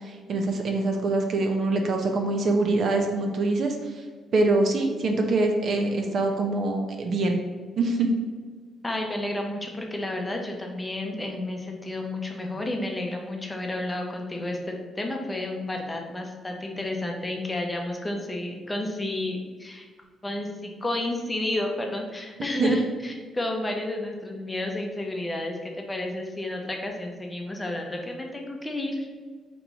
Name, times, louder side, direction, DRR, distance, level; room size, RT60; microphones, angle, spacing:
voice 1, 0.0-3.8 4.3-7.4 7.8-8.1 22.6-22.7, right 2 dB, 55° right, 3 dB, 0.6 m, -24 dB
voice 2, 8.8-19.9 20.2-29.1, left 1 dB, 15° left, 2 dB, 0.7 m, -31 dB
3.4 x 3.0 x 3.9 m, 1.5 s
cardioid pair, 90°, 0 cm